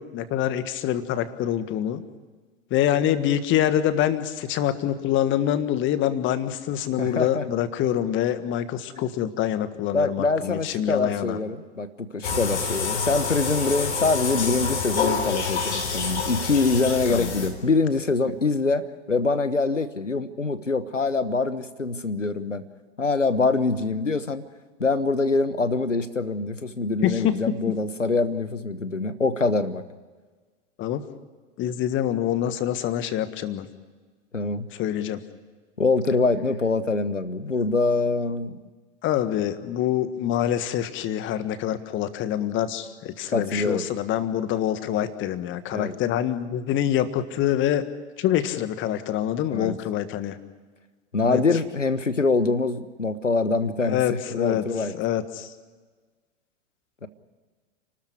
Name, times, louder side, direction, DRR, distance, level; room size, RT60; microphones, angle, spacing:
voice 1, 0.0-2.0 2.7-11.4 17.1-17.3 27.0-27.5 30.8-31.0 31.6-33.7 34.7-35.2 39.0-47.8 48.2-50.3 51.2-51.4 53.9-54.6 54.9-55.5, left 11 dB, 30° left, 12 dB, 1.6 m, -25 dB
voice 2, 7.0-7.4 9.9-22.6 23.0-24.4 24.8-29.8 34.3-34.7 35.8-38.6 43.3-43.8 45.7-45.9 49.5-49.7 51.1-54.9 57.0-57.1, left 3 dB, 90° left, 14 dB, 1.3 m, -24 dB
sound 1, 12.2-17.8, left 5 dB, 65° left, 4.0 m, -27 dB
29.5 x 13.0 x 9.6 m, 1.4 s
figure-of-eight pair, 95°, 36 cm